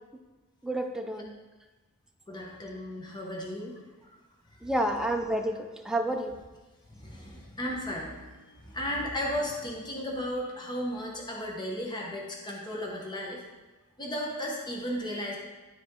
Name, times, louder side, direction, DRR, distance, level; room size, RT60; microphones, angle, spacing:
voice 1, 0.6-1.3 4.6-5.6 5.8-6.3, right 1 dB, 5° right, 3 dB, 0.6 m, -29 dB
voice 2, 2.3-3.8 6.9-13.4 14.0-15.4, equal, 20° left, -2 dB, 1.1 m, -35 dB
12.5 x 4.2 x 3.7 m, 1.2 s
head